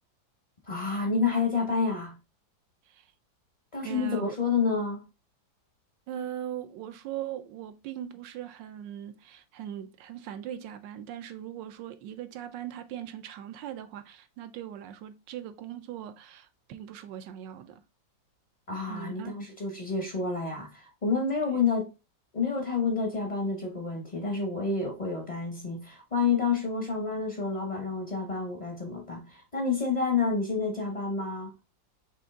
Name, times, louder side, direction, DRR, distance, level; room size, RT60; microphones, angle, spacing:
voice 1, 0.7-2.2 3.7-5.0 18.7-21.9 22.3-31.5, left 4 dB, 40° left, 0.6 m, -29 dB
voice 2, 3.8-4.4 6.1-17.8 18.7-19.3 21.5-21.7, right 10 dB, 75° right, 1.2 m, -40 dB
5.2 x 2.9 x 3.5 m
omnidirectional pair, 2.1 m